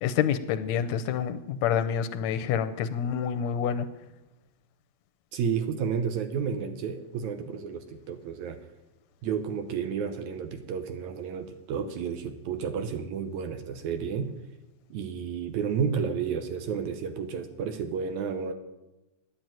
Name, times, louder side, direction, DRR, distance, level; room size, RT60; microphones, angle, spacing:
voice 1, 0.0-3.9, left 8 dB, 75° left, 11 dB, 1.7 m, -27 dB
voice 2, 5.3-8.7 9.2-14.3 14.9-18.5, right 6 dB, 75° right, 8 dB, 2.1 m, -31 dB
10.5 x 9.4 x 8.9 m, 0.97 s
omnidirectional pair, 3.6 m